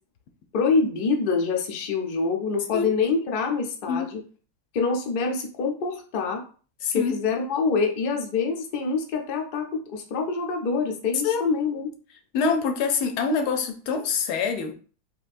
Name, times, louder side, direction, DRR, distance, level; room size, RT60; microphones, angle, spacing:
voice 1, 0.5-4.2 4.7-6.4 6.9-11.9, left 4 dB, 70° left, 0.5 m, -25 dB
voice 2, 6.8-7.1 11.2-11.4 12.3-14.8, left 5 dB, 85° left, 1.2 m, -25 dB
3.5 x 2.9 x 2.5 m
omnidirectional pair, 1.7 m